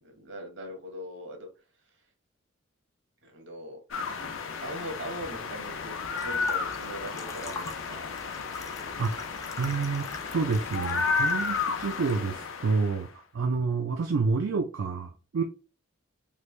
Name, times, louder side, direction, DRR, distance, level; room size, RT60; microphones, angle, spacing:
voice 1, 0.0-1.5 3.2-3.8 4.1-4.3 4.6-6.0 6.2-8.1, equal, 65° right, 1.0 m, -40 dB
sound 1, 3.9-13.1, left 4 dB, 80° left, 0.6 m, -32 dB
sound 2, 6.1-12.2, left 3 dB, 15° left, 0.4 m, -44 dB
voice 2, 9.6-15.4, right 4 dB, 80° right, 0.4 m, -29 dB
3.3 x 2.5 x 3.1 m
head